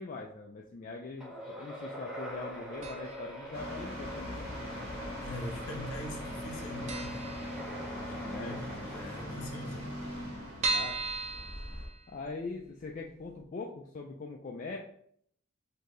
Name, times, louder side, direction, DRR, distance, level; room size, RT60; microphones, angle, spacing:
voice 1, 0.0-4.4 8.3-8.6 10.6-11.0 12.1-14.8, left 3 dB, 40° left, 0.3 m, -42 dB
sound 1, 1.2-10.0, equal, 5° right, 0.8 m, -44 dB
sound 2, 2.8-3.4 3.6-3.7 4.6-5.3 5.6-5.8 6.1-6.2 6.5-6.6 6.9-8.2 8.6-8.7 8.9-9.0 9.2-9.3 9.8-12.5 12.9-13.0 13.4-13.5, right 3 dB, 35° right, 0.4 m, -36 dB
sound 3, 3.5-11.9, left 1 dB, 70° right, 1.4 m, -41 dB
voice 2, 5.2-7.4 7.9-10.0, left 1 dB, 80° left, 0.7 m, -43 dB
4.3 x 2.7 x 3.1 m
head